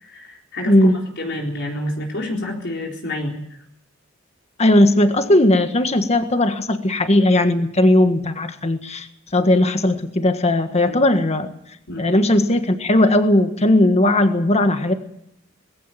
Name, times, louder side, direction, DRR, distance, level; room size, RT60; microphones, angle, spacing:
voice 1, 0.0-3.3 10.8-11.0 11.9-12.2, left 1 dB, 60° left, 0 dB, 4.1 m, -29 dB
voice 2, 0.7-1.0 4.6-9.1 9.3-11.5 12.0-14.9, left 1 dB, 30° left, 7 dB, 1.6 m, -17 dB
20.5 x 16.0 x 9.2 m, 0.75 s
head